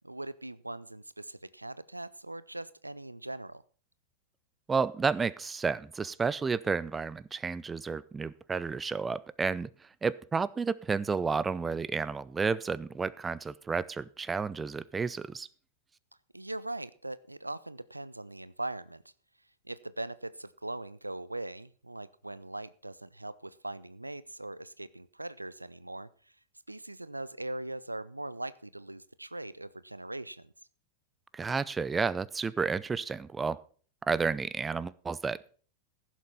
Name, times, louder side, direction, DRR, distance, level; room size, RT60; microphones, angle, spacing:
voice 1, 0.0-3.6 16.3-19.0 19.6-26.1 26.7-30.5, right 2 dB, 85° right, 18 dB, 0.5 m, -40 dB
voice 2, 4.7-9.7 10.0-15.5 31.3-33.6 34.0-35.5, right 5 dB, 15° right, 20 dB, 0.5 m, -31 dB
15.5 x 7.4 x 5.4 m, 0.42 s
figure-of-eight pair, 90°, 0 cm